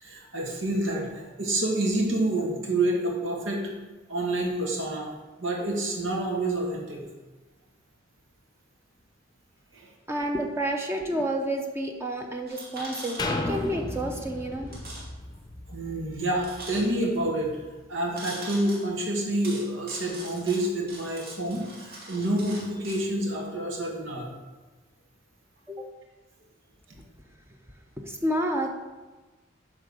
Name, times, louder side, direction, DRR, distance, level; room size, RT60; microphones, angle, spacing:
voice 1, 0.0-3.6 4.1-5.1 5.4-7.0 9.7-9.9 15.7-17.6 17.9-24.3, right 1 dB, 80° right, -1 dB, 1.9 m, -28 dB
voice 2, 10.1-14.8 25.7-25.9 28.0-28.8, right 1 dB, 15° right, 2 dB, 0.7 m, -30 dB
sound 1, 12.5-13.6 13.9-14.0 14.7-15.1 15.3-15.4 16.4-17.2 18.2-18.8 19.4-23.0, right 2 dB, 55° right, 2.6 m, -42 dB
sound 2, 13.2-17.0 17.5-17.6, left 1 dB, 20° left, 0.7 m, -34 dB
10.0 x 3.6 x 6.7 m, 1.2 s
head